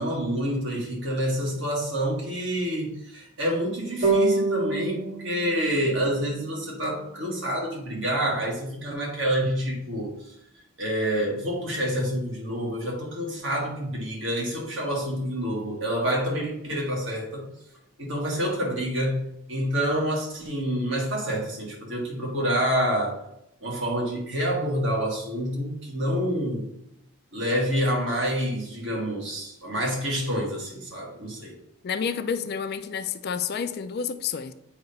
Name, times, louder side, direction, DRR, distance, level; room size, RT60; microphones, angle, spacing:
voice 1, 0.0-10.1 10.8-17.5 18.0-23.2 23.6-26.7 27.3-31.5, equal, 60° right, -2 dB, 2.0 m, -27 dB
sound 1, 4.0-7.3, right 3 dB, 80° right, 2.4 m, -27 dB
voice 2, 31.8-34.5, left 6 dB, 50° left, 10 dB, 0.4 m, -29 dB
7.9 x 2.9 x 5.3 m, 0.80 s
head